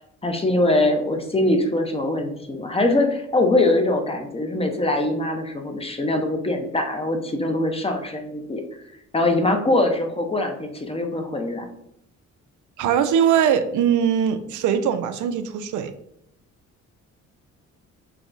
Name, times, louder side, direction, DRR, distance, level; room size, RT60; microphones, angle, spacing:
voice 1, 0.2-8.6 9.1-11.7, left 2 dB, 20° left, 4 dB, 0.8 m, -22 dB
voice 2, 12.8-15.9, right 8 dB, 75° right, 10 dB, 0.5 m, -21 dB
5.8 x 2.3 x 3.9 m, 0.73 s
cardioid pair, 90°, 30 cm